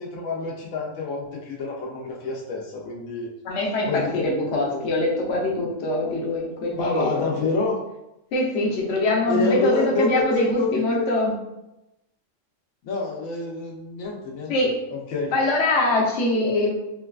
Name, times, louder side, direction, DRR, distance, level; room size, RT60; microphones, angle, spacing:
voice 1, 0.0-3.3 3.9-4.9 6.8-7.8 9.3-11.1 12.8-15.3 16.4-16.5, left 3 dB, 85° left, -2 dB, 1.1 m, -28 dB
voice 2, 3.4-7.3 8.3-11.3 14.5-14.8 15.3-16.7, left 2 dB, 65° left, -2 dB, 1.0 m, -23 dB
3.9 x 2.2 x 2.3 m, 0.91 s
omnidirectional pair, 1.4 m